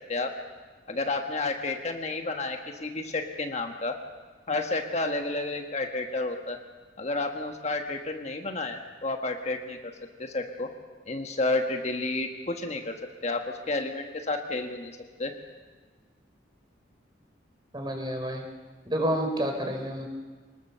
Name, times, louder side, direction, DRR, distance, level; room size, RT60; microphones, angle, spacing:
voice 1, 0.9-4.0 4.5-6.6 7.0-9.8 10.2-10.7 11.1-13.0 13.2-14.9 15.2-15.3, left 2 dB, 35° left, 4 dB, 1.4 m, -31 dB
voice 2, 17.7-18.4 18.8-20.1, equal, 25° right, 3 dB, 3.4 m, -29 dB
25.0 x 20.0 x 6.8 m, 1.4 s
head